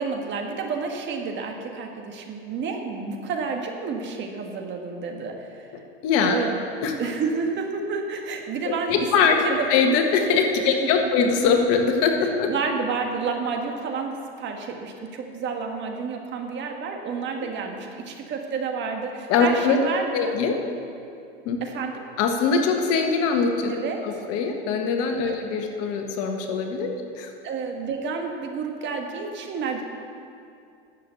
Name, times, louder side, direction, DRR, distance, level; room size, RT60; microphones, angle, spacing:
voice 1, 0.0-5.7 6.3-6.6 7.0-9.7 10.6-11.1 12.2-20.4 21.6-22.1 23.7-24.2 25.3-25.4 27.4-29.8, right 5 dB, 40° right, 3 dB, 1.7 m, -30 dB
voice 2, 6.0-6.4 6.8-6.9 8.6-9.4 9.7-12.5 17.4-17.5 19.3-19.8 20.1-20.6 21.4-21.6 22.2-23.7 24.0-27.3, left 5 dB, 55° left, 3 dB, 1.6 m, -22 dB
11.5 x 7.3 x 8.0 m, 2.5 s
hypercardioid pair, 105°, 29 cm